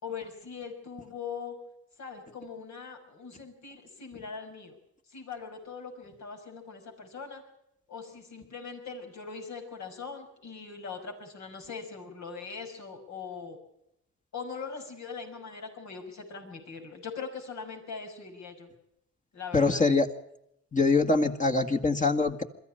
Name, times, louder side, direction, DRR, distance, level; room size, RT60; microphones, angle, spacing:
voice 1, 0.0-1.6 2.0-4.8 5.1-7.4 7.9-13.6 14.3-18.7 19.3-19.8, left 5 dB, 65° left, 3 dB, 5.8 m, -41 dB
voice 2, 19.5-20.1 20.7-22.4, left 3 dB, 25° left, 3 dB, 1.8 m, -24 dB
22.5 x 14.0 x 10.0 m, 0.80 s
cardioid pair, 90°, 30 cm